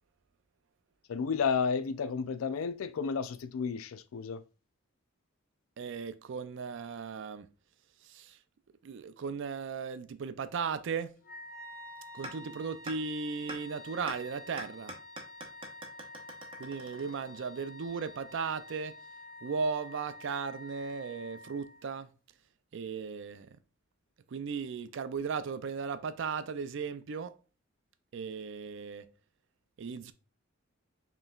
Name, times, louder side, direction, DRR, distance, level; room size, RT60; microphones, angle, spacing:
voice 1, 1.1-4.4, left 5 dB, 85° left, 0.4 m, -32 dB
voice 2, 5.8-7.5 8.0-8.4 8.8-11.1 12.1-14.9 16.6-18.9 19.4-22.1 22.7-23.5 24.3-27.3 28.1-29.1 29.8-30.1, right 5 dB, 60° right, 0.4 m, -36 dB
Wind instrument woodwind instrument, 11.2-22.0, left 2 dB, 45° left, 0.6 m, -49 dB
sound 1, 12.2-12.3 12.9-13.0 13.5-13.6 14.1-14.2 14.6-17.5, right 1 dB, 25° right, 0.8 m, -43 dB
5.3 x 3.0 x 2.4 m
head